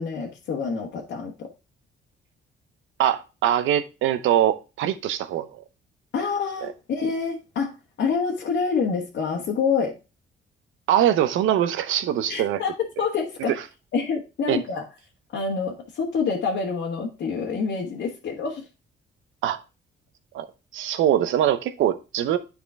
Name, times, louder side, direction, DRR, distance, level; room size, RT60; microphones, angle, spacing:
voice 1, 0.0-1.5 6.1-9.9 12.3-13.5 13.9-14.9 15.3-18.7, left 5 dB, 65° left, 1.4 m, -27 dB
voice 2, 3.0-5.6 6.6-6.7 10.9-12.6 13.0-13.1 14.5-14.6 19.4-19.6 20.3-20.5 20.7-22.4, right 11 dB, 80° right, 0.8 m, -22 dB
9.9 x 4.3 x 3.4 m
cardioid pair, 90°, 20 cm